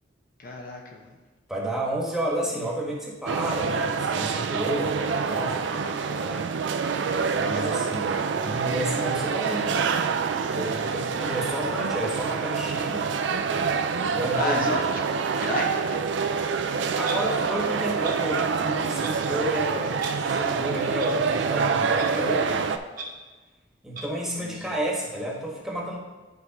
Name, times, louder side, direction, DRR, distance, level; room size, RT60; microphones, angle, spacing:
voice 1, 0.4-1.1 7.2-7.5 14.3-14.8 15.1-16.1 24.4-24.8, left 2 dB, 50° left, 0 dB, 0.9 m, -33 dB
voice 2, 1.5-6.5 7.3-9.8 10.5-13.1 14.1-14.8 17.0-22.7 23.8-26.0, right 1 dB, 5° right, -4 dB, 1.4 m, -31 dB
sound 1, 3.3-22.8, right 5 dB, 75° right, 0.4 m, -26 dB
Clock, 17.0-17.2 18.0-18.1 19.0-19.1 20.0-20.1 21.0-21.1 22.0-22.1 23.0-23.1 23.9-24.1, right 4 dB, 50° right, 1.0 m, -36 dB
11.0 x 4.7 x 2.9 m, 1.3 s
head